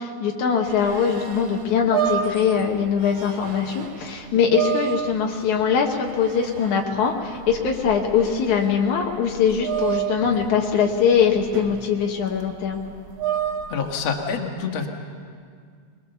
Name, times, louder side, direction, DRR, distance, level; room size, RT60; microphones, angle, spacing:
voice 1, 0.0-12.8, left 7 dB, 80° left, 1 dB, 2.7 m, -22 dB
sound 1, 0.6-14.2, right 9 dB, 70° right, 1.1 m, -31 dB
voice 2, 13.7-14.9, left 5 dB, 60° left, 2 dB, 2.7 m, -26 dB
22.0 x 21.5 x 6.9 m, 2.1 s
omnidirectional pair, 3.3 m